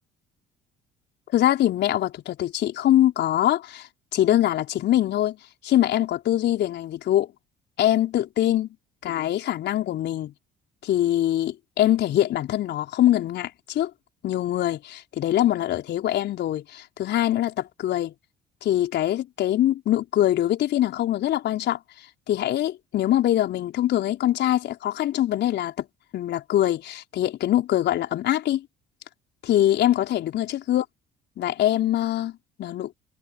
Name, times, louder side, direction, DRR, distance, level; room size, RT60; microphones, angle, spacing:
voice 1, 1.3-5.4 5.6-7.3 7.8-8.7 9.0-10.3 10.8-13.9 14.2-18.1 18.6-21.8 22.3-25.9 26.1-28.7 29.4-30.8 31.4-32.9, left 12 dB, 55° left, 4.4 m, -23 dB
figure-of-eight pair, 55°, 21 cm